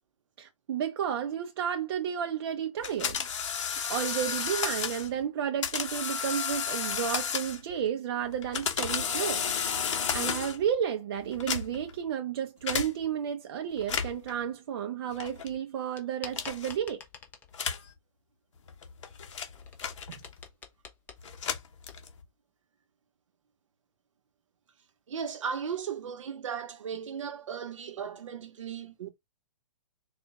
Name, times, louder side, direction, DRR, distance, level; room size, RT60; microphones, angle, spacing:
voice 1, 0.4-3.3 3.9-9.5 10.1-17.0, right 9 dB, 45° right, 0.6 m, -32 dB
sound 1, 2.8-5.1 5.6-7.7 8.3-10.7 11.3-11.9 12.7-12.9 13.8-14.3 15.2-15.5 16.3-16.7 17.5-17.9 18.7-20.4 21.2-22.2, left 7 dB, 55° left, 0.9 m, -32 dB
sound 2, 16.0-17.6 19.1-22.0, left 6 dB, 10° left, 0.6 m, -48 dB
voice 2, 25.1-29.1, right 7 dB, 60° right, 0.9 m, -36 dB
4.1 x 2.4 x 3.4 m
hypercardioid pair, 145°, 18 cm